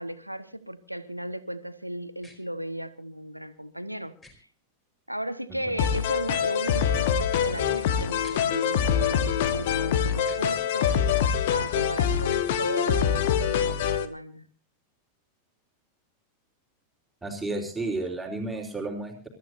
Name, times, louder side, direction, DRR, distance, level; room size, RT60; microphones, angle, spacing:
voice 1, 0.0-4.5 5.1-11.0 11.5-14.5, right 1 dB, 90° right, 11 dB, 1.3 m, -35 dB
sound 1, 2.2-2.4 4.2-4.3 6.2-6.5 8.2-8.4 10.2-10.5 12.2-12.5, left 1 dB, 15° left, 4.6 m, -51 dB
sound 2, 5.8-14.1, left 8 dB, 55° left, 1.4 m, -25 dB
voice 2, 17.2-19.3, right 2 dB, 10° right, 1 dB, 3.7 m, -32 dB
28.0 x 14.0 x 2.7 m, 0.34 s
figure-of-eight pair, 90°, 0 cm